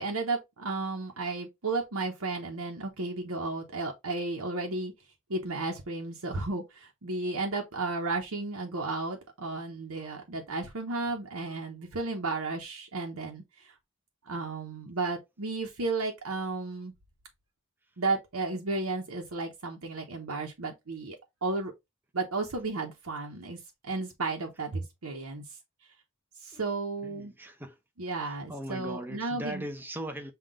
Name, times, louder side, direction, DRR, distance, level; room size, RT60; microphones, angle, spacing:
voice 1, 0.0-4.9 5.3-13.7 14.2-16.9 18.0-21.7 22.1-25.4 26.4-27.3 28.0-29.6, right 3 dB, 85° right, 0.9 m, -33 dB
voice 2, 27.0-27.8 28.2-30.3, right 1 dB, 10° right, 0.6 m, -39 dB
5.8 x 2.4 x 3.7 m
head